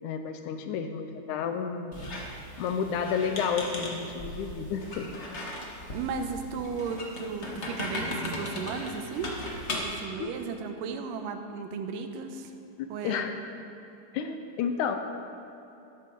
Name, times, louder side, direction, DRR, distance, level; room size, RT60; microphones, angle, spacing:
voice 1, 0.0-2.0 2.6-5.1 10.2-10.3 12.8-13.3 14.1-15.0, left 6 dB, 80° left, 6 dB, 2.0 m, -31 dB
Squeak, 1.9-10.0, left 1 dB, 55° left, 0.7 m, -37 dB
voice 2, 5.9-9.4 9.8-12.5 12.9-13.3, right 5 dB, 90° right, 6 dB, 2.4 m, -35 dB
13.0 x 12.0 x 3.7 m, 3.0 s
omnidirectional pair, 3.7 m